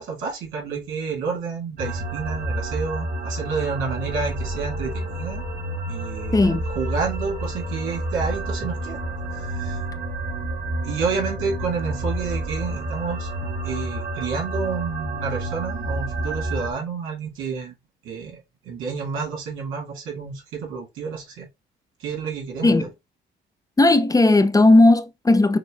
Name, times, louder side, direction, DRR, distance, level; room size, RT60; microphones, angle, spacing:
voice 1, 0.0-5.5 5.9-9.0 9.4-9.8 10.8-13.3 13.6-17.7 18.0-18.4 18.7-21.5 22.0-22.9, right 5 dB, 90° right, 2.2 m, -30 dB
sound 1, 1.8-16.7, right 1 dB, 45° right, 1.3 m, -29 dB
voice 2, 6.3-6.6 22.6-22.9 23.8-25.6, left 2 dB, 20° left, 0.6 m, -16 dB
6.4 x 2.3 x 3.5 m
cardioid pair, 90°, 20 cm